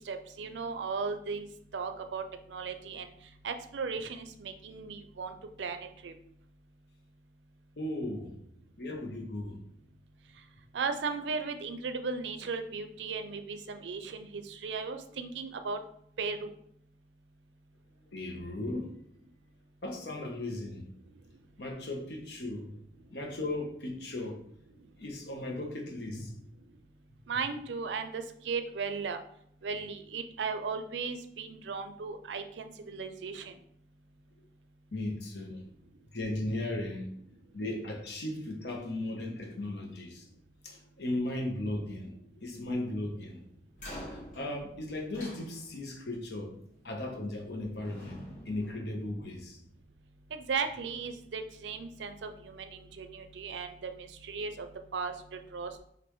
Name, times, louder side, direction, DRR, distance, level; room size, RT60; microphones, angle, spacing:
voice 1, 0.0-1.5 1.7-2.2 2.5-3.1 3.4-6.1 10.7-15.8 16.2-16.5 27.3-29.2 29.6-33.6 50.3-55.8, right 5 dB, 85° right, 8 dB, 0.4 m, -36 dB
voice 2, 7.8-8.4 8.8-9.5 18.1-18.9 19.8-20.9 21.6-22.7 23.1-24.4 25.0-26.3 34.9-35.6 36.1-37.1 37.5-40.2 40.6-43.4 44.1-46.5 46.8-48.2 48.5-49.6, left 1 dB, 70° left, 1 dB, 1.0 m, -36 dB
sound 1, 43.7-46.0 47.2-47.5 47.8-49.6, equal, 45° left, 1.4 m, -47 dB
5.3 x 2.6 x 3.1 m, 0.68 s
head